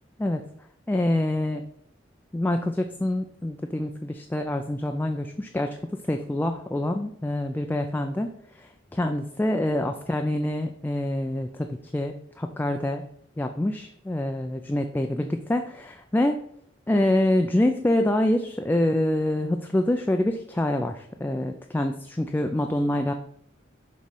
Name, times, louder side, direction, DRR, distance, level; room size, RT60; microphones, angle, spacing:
voice 1, 0.9-1.6 2.3-5.8 6.1-8.3 8.6-13.0 13.4-16.4 16.9-23.1, left 1 dB, 10° left, 5 dB, 0.3 m, -26 dB
6.4 x 3.1 x 5.4 m, 0.67 s
head